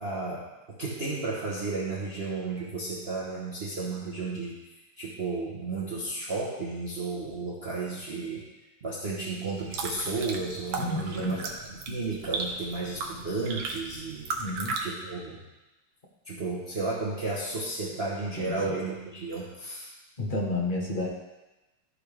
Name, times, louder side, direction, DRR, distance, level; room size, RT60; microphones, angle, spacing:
voice 1, 0.0-4.6 5.0-8.5 8.8-11.4 11.7-14.3 14.8-15.4 16.2-19.9, right 3 dB, 40° right, -6 dB, 1.1 m, -33 dB
sound 1, 9.5-14.8, right 3 dB, 65° right, 1.6 m, -36 dB
voice 2, 10.8-11.4 14.4-14.7 18.4-18.8 20.2-21.1, left 2 dB, 30° left, -2 dB, 1.1 m, -31 dB
13.5 x 4.8 x 3.4 m, 1.0 s
omnidirectional pair, 2.4 m